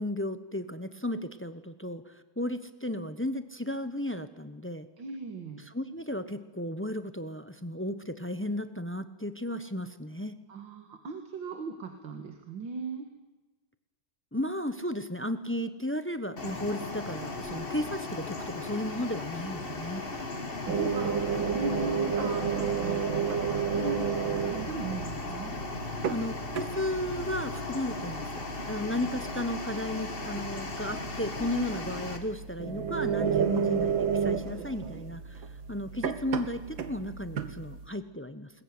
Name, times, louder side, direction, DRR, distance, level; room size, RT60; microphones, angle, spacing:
voice 1, 0.0-4.9 5.6-10.4 14.3-20.0 26.1-28.3 28.6-38.5, left 1 dB, 15° left, 11 dB, 0.5 m, -34 dB
voice 2, 5.0-5.6 10.5-13.1 20.1-24.2 24.4-25.6, right 3 dB, 75° right, 6 dB, 2.5 m, -38 dB
sound 1, 16.4-32.2, left 3 dB, 30° left, 2.2 m, -37 dB
sound 2, 20.7-37.9, right 7 dB, 90° right, 2.1 m, -32 dB
21.5 x 20.5 x 9.6 m, 1.2 s
omnidirectional pair, 2.1 m